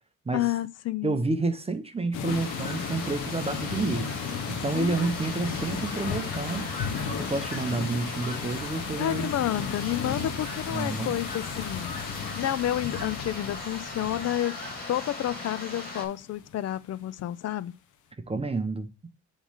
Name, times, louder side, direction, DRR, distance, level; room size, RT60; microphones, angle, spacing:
voice 1, 0.3-1.2 4.7-5.1 9.0-11.9 12.4-14.5 14.9-17.7, left 12 dB, 55° left, 0.5 m, -30 dB
voice 2, 1.0-4.1 4.5-6.7 7.2-9.3 10.7-11.1 18.3-18.9, right 3 dB, 20° right, 0.8 m, -29 dB
sound 1, 2.1-16.7, left 7 dB, 80° left, 0.8 m, -35 dB
sound 2, 2.3-16.1, left 2 dB, 30° left, 2.4 m, -38 dB
6.9 x 3.2 x 5.7 m
cardioid pair, 90°, 30 cm